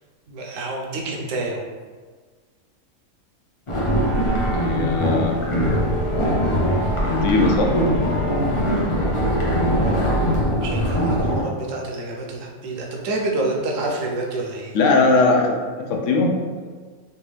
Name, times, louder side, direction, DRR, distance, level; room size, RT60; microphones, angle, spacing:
voice 1, 0.3-1.6 10.5-14.7, right 2 dB, 75° right, 0 dB, 1.0 m, -28 dB
sound 1, 3.7-11.4, equal, 40° left, 0.4 m, -21 dB
voice 2, 4.6-5.4 7.0-7.7 14.7-16.3, left 3 dB, 70° left, 1 dB, 0.9 m, -19 dB
3.4 x 2.7 x 3.2 m, 1.5 s
omnidirectional pair, 1.4 m